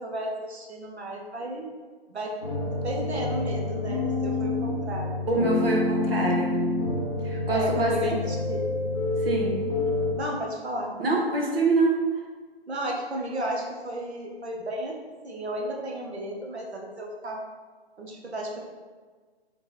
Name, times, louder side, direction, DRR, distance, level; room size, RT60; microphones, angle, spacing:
voice 1, 0.0-1.7 2.1-2.4 2.7-5.5 7.5-8.7 10.1-10.9 12.7-15.0 15.2-17.4 18.0-18.6, right 1 dB, 85° right, -1 dB, 1.1 m, -33 dB
sound 1, 2.4-10.1, left 2 dB, 20° left, 0.4 m, -28 dB
voice 2, 5.3-6.6 7.2-8.2 9.2-9.6 11.0-12.0, right 3 dB, 60° right, -1 dB, 1.1 m, -25 dB
3.6 x 3.1 x 4.4 m, 1.5 s
hypercardioid pair, 150°, 32 cm